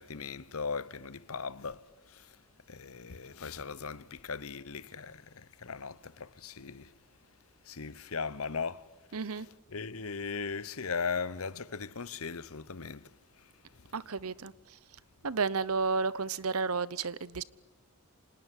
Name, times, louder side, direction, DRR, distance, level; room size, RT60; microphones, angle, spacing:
voice 1, 0.0-2.3 2.7-6.9 7.6-8.9 9.7-13.1 13.8-13.9, left 5 dB, 70° left, 1.0 m, -38 dB
voice 2, 9.1-9.5 13.9-14.5 15.2-17.4, right 4 dB, 75° right, 0.9 m, -32 dB
26.5 x 19.5 x 9.8 m
head